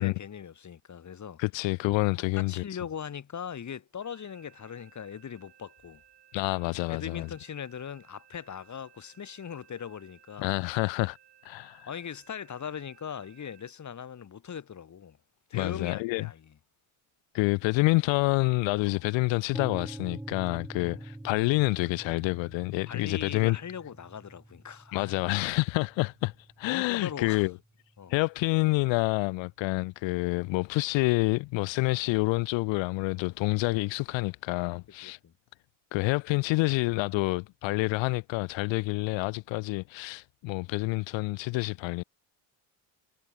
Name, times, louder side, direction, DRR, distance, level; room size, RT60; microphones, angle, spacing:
voice 1, 0.0-1.4 2.3-6.0 6.9-10.5 11.9-15.2 15.5-16.5 18.9-19.0 20.8-21.0 22.9-25.2 26.6-27.5 28.0-28.1 35.0-35.3, left 8 dB, 35° left, 3.4 m, -40 dB
voice 2, 1.4-2.6 6.3-7.3 10.4-11.2 11.4-11.9 15.5-16.3 17.3-23.6 24.9-27.5 28.1-35.2 35.9-42.0, left 23 dB, 65° left, 0.6 m, -28 dB
sound 1, 4.0-13.7, right 12 dB, 55° right, 5.3 m, -60 dB
sound 2, 19.5-27.4, right 1 dB, 5° right, 0.6 m, -45 dB
cardioid pair, 110°, 49 cm